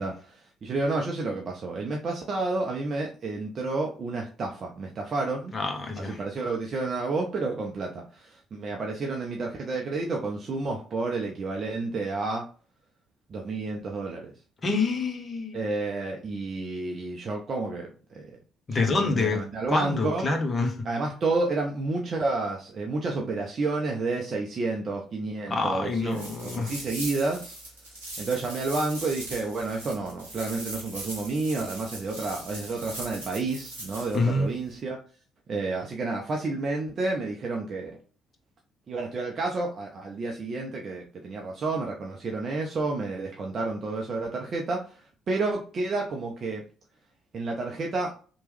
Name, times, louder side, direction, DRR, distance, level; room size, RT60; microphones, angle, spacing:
voice 1, 0.0-5.5 6.0-12.4 13.3-14.3 15.5-17.9 18.1-18.3 18.8-20.3 20.8-27.6 28.2-35.0 35.5-38.0 38.9-44.8 45.3-46.6 47.3-48.1, right 3 dB, 45° right, 0.5 m, -30 dB
voice 2, 5.5-6.2 14.6-15.6 18.7-20.8 25.5-26.7 34.1-34.5, left 3 dB, 35° left, 0.8 m, -27 dB
sound 1, 26.1-34.2, right 1 dB, 85° right, 0.9 m, -40 dB
3.0 x 2.2 x 3.2 m
figure-of-eight pair, 45°, 0 cm